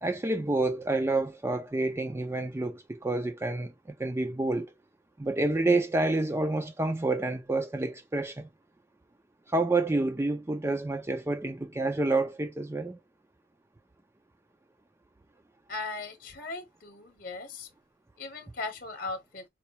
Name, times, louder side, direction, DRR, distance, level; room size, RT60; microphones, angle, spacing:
voice 1, 0.0-4.7 5.2-8.5 9.5-13.0, right 2 dB, 15° right, 0.4 m, -28 dB
voice 2, 15.7-17.7 18.2-19.4, left 3 dB, 45° left, 0.9 m, -38 dB
4.3 x 2.3 x 2.8 m
head